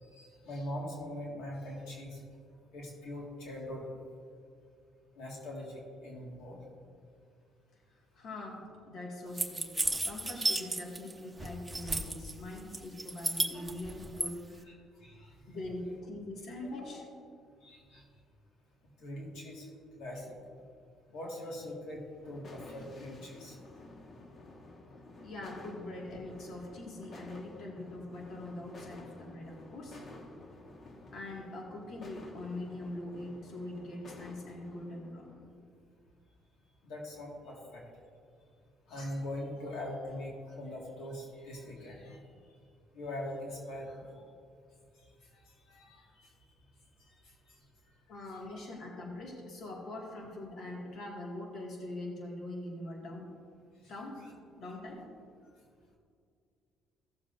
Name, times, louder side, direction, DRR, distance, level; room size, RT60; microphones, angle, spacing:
voice 1, 0.0-2.2 2.7-3.9 5.1-6.6 15.0-15.4 17.6-18.0 19.0-19.7 20.0-20.4 21.1-23.6 36.8-37.8 38.9-42.2 42.9-44.1 45.5-46.3 47.5-47.6, left 1 dB, 80° left, -2 dB, 1.9 m, -42 dB
voice 2, 7.9-9.7 10.0-14.7 15.5-17.3 25.2-30.0 31.1-35.3 48.1-53.3 53.9-54.2 54.6-55.0, left 1 dB, 60° left, -1 dB, 2.0 m, -43 dB
sound 1, 9.4-11.1 11.4-12.3 12.7-14.3, right 2 dB, 10° right, 0.9 m, -32 dB
sound 2, 22.2-35.5, left 2 dB, 40° left, 1.2 m, -51 dB
16.0 x 7.3 x 2.6 m, 2.3 s
cardioid pair, 105°, 0 cm